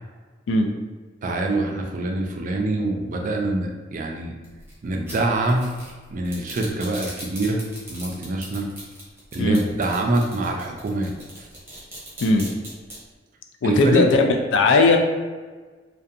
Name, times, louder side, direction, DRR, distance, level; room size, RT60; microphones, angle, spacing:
voice 1, 1.2-4.3 4.8-5.7 6.1-7.6 7.9-8.7 9.3-11.1 11.4-11.5 13.6-14.1, right 2 dB, 45° right, 1 dB, 0.3 m, -25 dB
sound 1, 4.4-13.0, right 1 dB, 15° right, 0.8 m, -39 dB
voice 2, 13.6-14.2 14.5-15.0, left 3 dB, 75° left, 4 dB, 0.3 m, -17 dB
2.7 x 2.2 x 2.4 m, 1.4 s
head